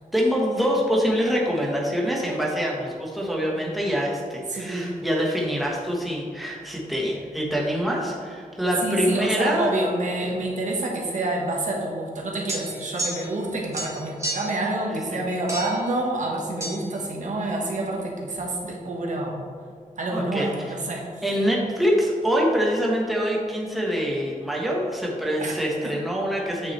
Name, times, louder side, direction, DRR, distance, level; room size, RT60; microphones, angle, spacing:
voice 1, 0.1-9.7 14.9-15.2 20.1-20.8 21.2-26.7, equal, ahead, -4 dB, 1.3 m, -25 dB
voice 2, 4.5-4.9 8.8-19.4 20.0-21.0 25.4-25.9, right 2 dB, 60° right, -1 dB, 1.4 m, -28 dB
sound 1, 12.5-13.5 13.7-14.6 15.5-15.9 16.6-16.8, right 1 dB, 20° right, 1.4 m, -31 dB
9.1 x 6.0 x 3.3 m, 2.1 s
wide cardioid pair, 130°, 14 cm